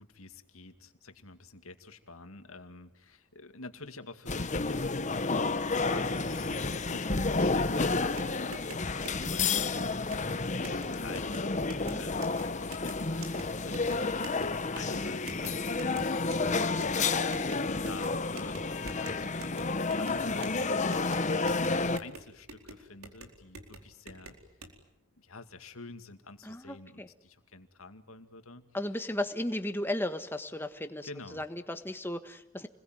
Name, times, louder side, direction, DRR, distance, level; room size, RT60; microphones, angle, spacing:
voice 1, 0.0-5.4 5.9-17.3 17.8-24.3 25.2-28.6 31.0-31.4, left 3 dB, 80° left, 8 dB, 2.3 m, -48 dB
sound 1, 4.3-22.0, left 3 dB, 35° left, 1.0 m, -30 dB
sound 2, 8.0-24.7, right 2 dB, 85° right, 4.5 m, -48 dB
voice 2, 26.4-27.1 28.7-32.7, left 1 dB, 10° left, 8 dB, 1.5 m, -35 dB
29.0 x 21.5 x 9.2 m, 0.76 s
head